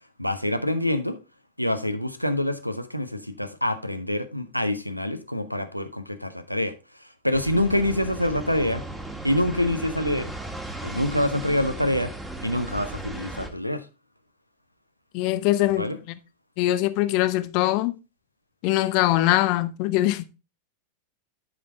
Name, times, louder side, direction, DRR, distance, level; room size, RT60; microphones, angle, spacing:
voice 1, 0.2-1.2 1.6-6.7 7.2-8.8 9.2-10.3 10.8-12.1 12.4-13.8 15.7-16.0, left 1 dB, 90° left, 0.8 m, -26 dB
sound 1, 7.3-13.5, right 2 dB, 10° right, 1.7 m, -36 dB
voice 2, 15.1-15.9 16.6-17.9 18.6-20.2, left 15 dB, 45° left, 0.7 m, -22 dB
11.0 x 5.2 x 3.6 m
figure-of-eight pair, 90°, 0 cm